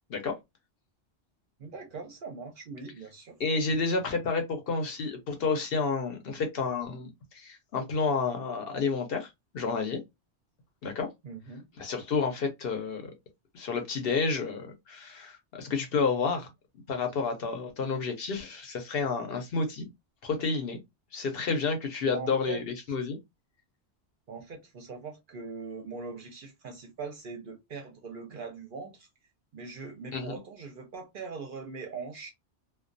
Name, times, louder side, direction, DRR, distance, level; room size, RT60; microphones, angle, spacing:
voice 1, 1.6-3.4 11.2-11.7 22.0-22.6 24.3-29.1 29.5-32.3, right 4 dB, 60° right, 0.6 m, -41 dB
voice 2, 3.4-9.3 9.5-10.0 10.8-11.1 11.8-13.1 13.5-16.5 16.9-19.9 20.2-20.8 21.1-23.2 30.1-30.4, left 4 dB, 60° left, 0.8 m, -30 dB
2.2 x 2.2 x 2.5 m
omnidirectional pair, 1.2 m